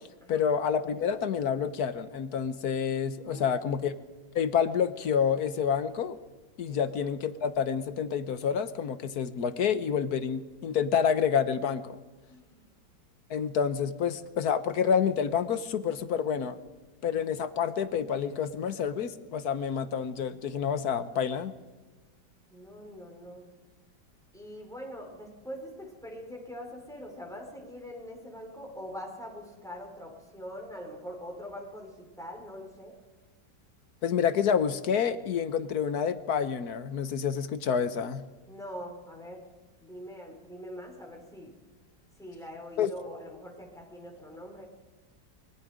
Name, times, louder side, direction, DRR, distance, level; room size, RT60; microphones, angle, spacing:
voice 1, 0.3-3.9 4.3-6.2 6.6-12.0 13.3-16.6 17.0-21.5 34.0-38.2 42.8-42.9, left 7 dB, 60° left, 12 dB, 1.3 m, -28 dB
voice 2, 3.3-3.9 6.7-6.8 12.3-12.7 22.5-23.5 24.3-32.9 38.5-39.4 39.8-41.5 42.2-44.6, equal, ahead, 1 dB, 4.7 m, -43 dB
25.0 x 22.5 x 5.1 m, 1.2 s
omnidirectional pair, 2.1 m